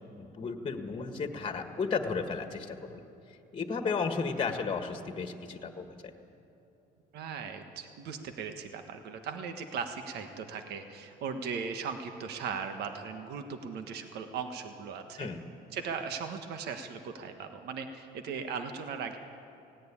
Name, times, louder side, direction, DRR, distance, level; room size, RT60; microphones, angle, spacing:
voice 1, 0.2-6.1 15.2-15.4, left 5 dB, 30° left, 6 dB, 1.6 m, -34 dB
voice 2, 7.1-15.3 15.7-19.2, right 6 dB, 75° right, 6 dB, 1.5 m, -38 dB
17.5 x 17.0 x 9.9 m, 2.9 s
cardioid pair, 110°, 17 cm